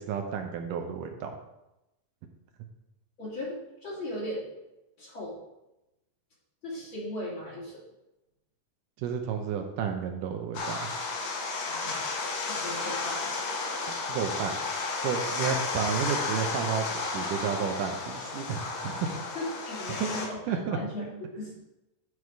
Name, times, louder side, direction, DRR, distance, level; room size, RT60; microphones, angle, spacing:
voice 1, 0.0-1.4 9.0-10.8 14.1-14.6 15.0-19.1 20.0-20.1 20.5-20.8, right 7 dB, 80° right, 4 dB, 2.4 m, -31 dB
voice 2, 3.2-4.4 5.0-5.3 6.6-7.8 11.6-13.3 19.4-21.5, left 1 dB, 40° left, -6 dB, 3.5 m, -38 dB
sound 1, 10.6-20.3, left 3 dB, 90° left, 3.1 m, -33 dB
11.5 x 4.8 x 4.8 m, 0.93 s
omnidirectional pair, 3.8 m